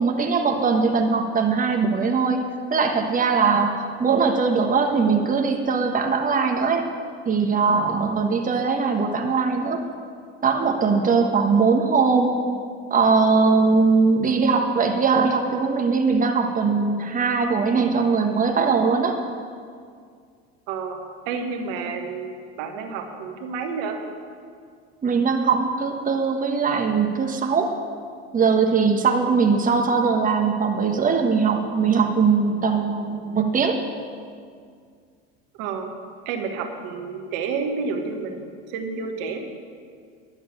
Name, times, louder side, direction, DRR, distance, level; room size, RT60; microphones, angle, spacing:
voice 1, 0.0-2.4 2.7-3.7 4.0-6.8 7.2-9.8 10.4-12.4 12.9-19.2 25.0-27.7 28.3-33.8, right 5 dB, 25° right, 3 dB, 1.3 m, -20 dB
voice 2, 20.7-24.0 29.2-29.4 35.6-35.9 36.2-39.4, right 5 dB, 75° right, 4 dB, 1.5 m, -30 dB
11.0 x 6.5 x 8.8 m, 2.1 s
supercardioid pair, 95°, 32 cm